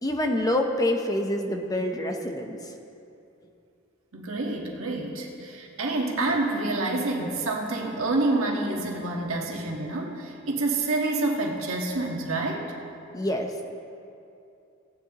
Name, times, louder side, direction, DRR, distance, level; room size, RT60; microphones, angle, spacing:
voice 1, 0.0-2.6 13.1-13.6, left 1 dB, 15° left, 4 dB, 0.7 m, -26 dB
voice 2, 4.1-12.7, right 2 dB, 80° right, 0 dB, 1.5 m, -28 dB
17.0 x 9.7 x 3.0 m, 2.6 s
head